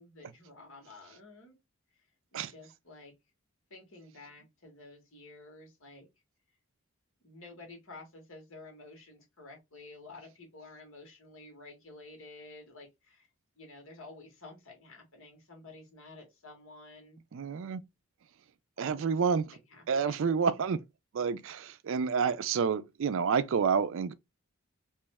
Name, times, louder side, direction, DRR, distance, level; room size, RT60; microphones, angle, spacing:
voice 1, 0.0-1.6 2.3-3.1 3.7-6.1 7.2-13.3 13.5-17.2 18.8-20.4, left 2 dB, 65° left, 1.7 m, -51 dB
voice 2, 17.3-17.8 18.8-19.5 19.9-20.8 21.1-24.1, right 6 dB, 60° right, 0.4 m, -29 dB
3.2 x 3.0 x 3.4 m
head